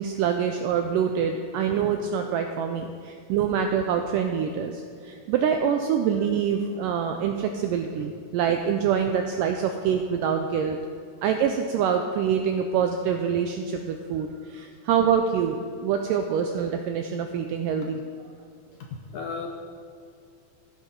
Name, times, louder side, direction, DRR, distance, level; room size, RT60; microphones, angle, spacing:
voice 1, 0.0-10.8 11.2-18.0, right 7 dB, 90° right, 5 dB, 1.9 m, -25 dB
voice 2, 18.8-19.5, left 5 dB, 75° left, 1 dB, 1.9 m, -35 dB
14.5 x 11.0 x 3.8 m, 2.3 s
omnidirectional pair, 4.4 m